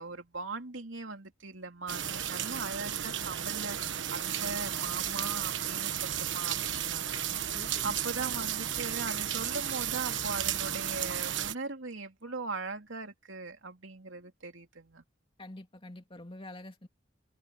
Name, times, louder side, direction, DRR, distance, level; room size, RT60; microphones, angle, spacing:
voice 1, 0.0-3.8 4.1-7.2 7.5-15.0, right 3 dB, 85° right, 3.0 m, -40 dB
sound 1, 1.9-11.5, right 10 dB, 70° right, 1.3 m, -33 dB
voice 2, 7.5-8.0 15.4-16.9, left 1 dB, 30° left, 2.7 m, -46 dB
head